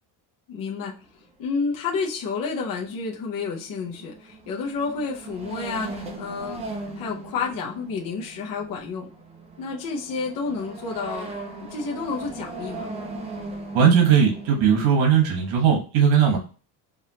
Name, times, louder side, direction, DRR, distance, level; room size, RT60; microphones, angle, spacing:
voice 1, 0.5-0.9 1.4-6.6 6.9-9.1 9.6-11.3 11.7-12.9, left 4 dB, 45° left, -2 dB, 0.8 m, -30 dB
sound 1, 0.9-1.0 1.9-2.0 2.2-2.3 2.6-15.5, right 2 dB, 15° right, 0.4 m, -39 dB
voice 2, 13.7-16.4, right 7 dB, 75° right, 1 dB, 1.3 m, -18 dB
5.1 x 2.6 x 2.8 m, 0.36 s
cardioid pair, 175°, 47 cm